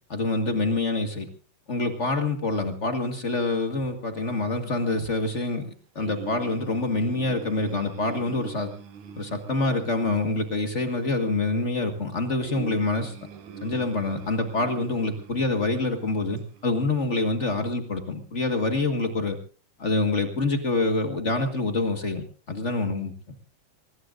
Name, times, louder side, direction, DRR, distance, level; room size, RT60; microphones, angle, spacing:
voice 1, 0.1-1.3 1.7-8.7 9.2-13.1 13.6-19.4 19.8-23.1, left 2 dB, 40° left, 6 dB, 1.1 m, -26 dB
sound 1, 6.0-17.2, right 6 dB, 65° right, 3.0 m, -44 dB
24.5 x 20.0 x 2.6 m, 0.36 s
omnidirectional pair, 3.7 m